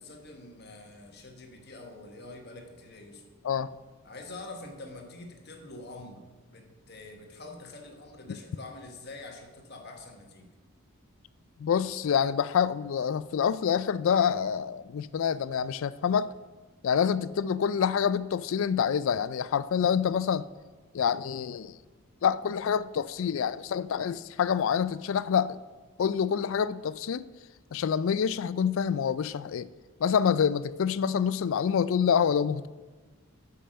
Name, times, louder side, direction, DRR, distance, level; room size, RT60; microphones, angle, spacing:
voice 1, 0.0-3.2 4.0-10.5, left 2 dB, 45° left, 3 dB, 1.3 m, -45 dB
voice 2, 11.6-16.3 16.8-20.5 20.9-21.7 22.2-25.6 26.0-27.2 27.7-29.7 30.0-32.7, left 7 dB, 65° left, 16 dB, 0.3 m, -27 dB
8.4 x 5.6 x 6.4 m, 1.3 s
head